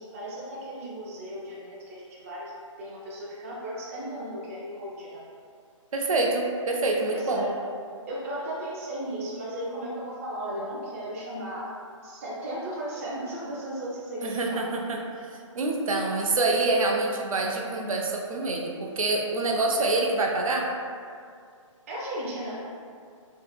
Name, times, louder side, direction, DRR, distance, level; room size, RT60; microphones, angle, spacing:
voice 1, 0.0-2.5 2.8-5.2 7.1-7.5 8.1-11.7 12.0-14.7 21.9-22.6, right 1 dB, 25° right, -6 dB, 0.4 m, -35 dB
voice 2, 5.9-7.4 14.2-15.0 15.5-20.7, right 2 dB, 90° right, 0 dB, 0.5 m, -26 dB
2.8 x 2.5 x 2.2 m, 2.3 s
hypercardioid pair, 155°, 17 cm